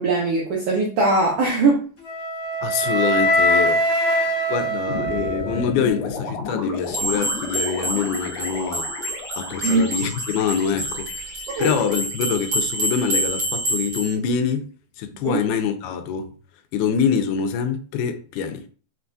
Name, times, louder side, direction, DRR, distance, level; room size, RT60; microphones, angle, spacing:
voice 1, 0.0-1.8 9.6-9.9 11.5-11.7 15.2-15.4, right 3 dB, 80° right, 1.4 m, -20 dB
Wind instrument woodwind instrument, 2.0-6.1, equal, 45° left, 0.8 m, -22 dB
voice 2, 2.6-3.8 4.5-8.9 9.4-14.7 15.0-16.4 16.7-18.7, left 7 dB, 85° left, 2.1 m, -25 dB
sound 1, 4.9-13.2, left 4 dB, 70° left, 1.8 m, -33 dB
sound 2, 6.9-14.1, right 1 dB, 60° right, 1.0 m, -28 dB
5.9 x 2.3 x 2.6 m
omnidirectional pair, 3.6 m